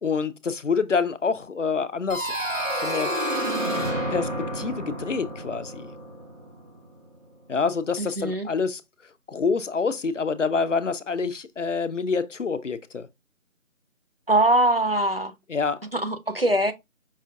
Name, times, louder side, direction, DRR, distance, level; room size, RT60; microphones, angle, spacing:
voice 1, 0.0-2.3 2.7-3.1 4.1-5.9 7.5-8.8 9.3-13.1 15.5-15.8, left 5 dB, 60° left, 0.5 m, -27 dB
sound 1, 2.1-6.8, right 1 dB, 65° right, 1.5 m, -29 dB
voice 2, 8.0-8.5 14.3-15.3 15.9-16.7, right 1 dB, 45° right, 0.5 m, -22 dB
5.4 x 2.4 x 2.6 m
figure-of-eight pair, 175°, 41 cm